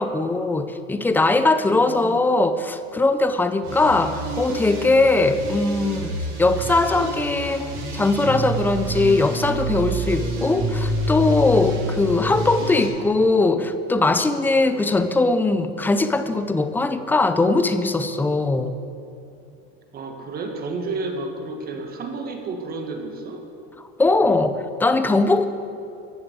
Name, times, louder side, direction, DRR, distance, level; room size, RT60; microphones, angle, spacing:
voice 1, 0.0-18.7 24.0-25.5, left 3 dB, 5° left, 10 dB, 0.4 m, -20 dB
voice 2, 1.7-2.2 18.4-18.6 19.9-23.4, right 3 dB, 30° right, 4 dB, 1.7 m, -31 dB
sound 1, 3.6-12.9, right 2 dB, 55° right, 4.0 m, -28 dB
15.0 x 7.2 x 8.2 m, 2.7 s
supercardioid pair, 150°, 31 cm